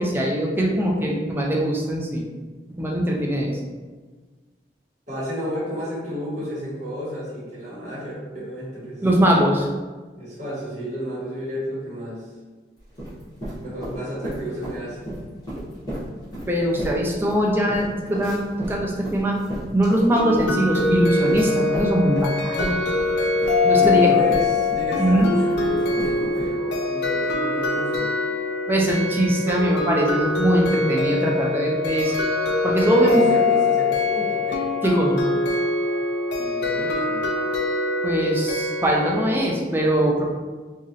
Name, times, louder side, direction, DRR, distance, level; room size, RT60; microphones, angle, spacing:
voice 1, 0.0-2.3 2.8-3.6 9.0-9.7 16.5-19.4 19.7-22.8 23.6-24.1 25.0-25.3 28.7-32.1 32.6-33.2 34.8-35.2 38.0-40.3, right 1 dB, 10° right, -1 dB, 0.4 m, -21 dB
voice 2, 5.1-9.0 10.2-12.3 13.6-15.0 23.7-28.1 32.9-34.7 36.3-37.2, equal, 40° right, -9 dB, 1.2 m, -32 dB
sound 1, 12.8-14.8 15.0-22.3 22.6-26.5, right 1 dB, 25° left, 1.2 m, -33 dB
sound 2, 20.2-39.4, left 3 dB, 70° left, 0.4 m, -23 dB
3.0 x 2.4 x 2.6 m, 1.3 s
head